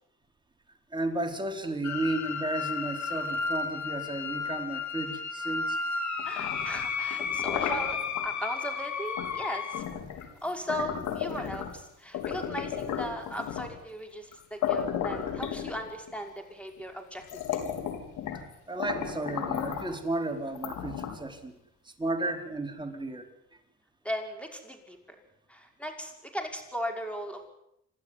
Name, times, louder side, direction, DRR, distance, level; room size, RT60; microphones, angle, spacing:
voice 1, 0.9-5.8 18.7-21.5 21.8-23.3, right 2 dB, 15° right, 3 dB, 4.3 m, -33 dB
sound 1, 1.8-9.8, left 5 dB, 65° left, 3.3 m, -33 dB
sound 2, 6.2-8.3 9.2-9.4 9.7-11.8 12.1-13.8 14.3-14.4 14.6-16.1 16.8-16.9 17.2-18.5 18.8-19.9 20.5-21.3, left 8 dB, 85° left, 3.8 m, -34 dB
voice 2, 6.2-8.0 8.2-9.9 10.4-17.6 24.0-25.0 25.5-27.5, equal, 5° left, 4 dB, 5.5 m, -37 dB
28.0 x 12.5 x 9.9 m, 0.79 s
cardioid pair, 90°, 30 cm